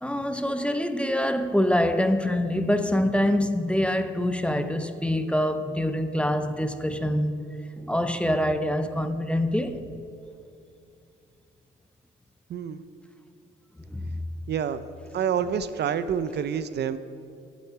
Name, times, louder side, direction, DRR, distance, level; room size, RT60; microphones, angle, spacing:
voice 1, 0.0-7.5 7.8-9.9 13.9-14.2, left 1 dB, 5° left, 0.6 m, -25 dB
voice 2, 12.5-12.8 14.5-14.8 15.1-17.0, right 8 dB, 60° right, 0.6 m, -27 dB
8.2 x 7.6 x 8.5 m
cardioid pair, 90°, 20 cm